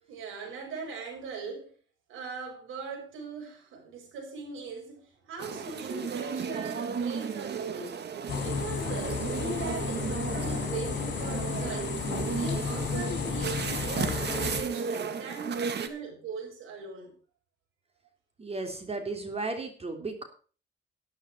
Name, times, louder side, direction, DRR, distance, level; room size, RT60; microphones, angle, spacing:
voice 1, 0.0-1.7 2.1-7.9 8.4-11.9 12.3-17.1, right 4 dB, 85° right, 6.8 m, -40 dB
sound 1, 5.4-15.9, right 6 dB, 60° right, 2.0 m, -34 dB
sound 2, 8.3-14.6, left 6 dB, 65° left, 2.9 m, -33 dB
voice 2, 18.4-20.2, right 3 dB, 30° right, 3.3 m, -34 dB
12.5 x 11.0 x 4.5 m
cardioid pair, 90°, 20 cm